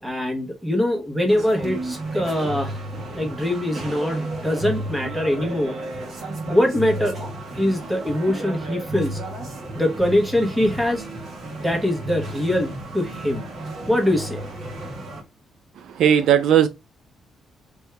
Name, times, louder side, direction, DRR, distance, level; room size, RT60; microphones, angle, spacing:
voice 1, 0.0-2.8 3.1-5.8 6.5-7.2 7.6-9.2 9.7-11.1 11.6-13.5 13.9-14.4, left 1 dB, 5° right, 1.1 m, -23 dB
sound 1, 1.3-15.2, right 1 dB, 50° right, 1.5 m, -33 dB
voice 2, 16.0-16.7, right 9 dB, 75° right, 0.5 m, -16 dB
3.3 x 2.7 x 4.5 m
cardioid pair, 140°, 0 cm